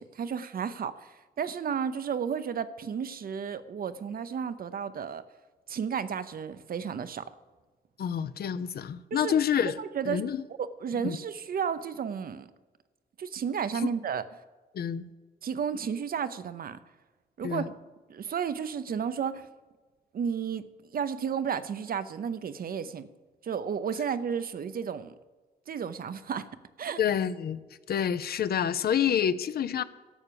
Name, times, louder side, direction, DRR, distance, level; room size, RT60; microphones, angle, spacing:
voice 1, 0.0-5.2 5.7-7.3 9.1-9.3 9.8-10.3 10.6-12.5 13.2-14.2 15.4-16.8 17.4-17.8 18.1-19.5 20.1-20.6 20.9-23.1 23.4-25.1 25.7-26.5 26.8-27.0, right 7 dB, 60° right, 13 dB, 0.7 m, -32 dB
voice 2, 8.0-9.8 10.1-10.4 11.0-11.2 14.7-15.1 17.4-17.7 27.0-27.6 27.9-29.8, left 8 dB, 65° left, 14 dB, 0.6 m, -28 dB
12.0 x 7.3 x 6.9 m, 1.3 s
cardioid pair, 80°, 17 cm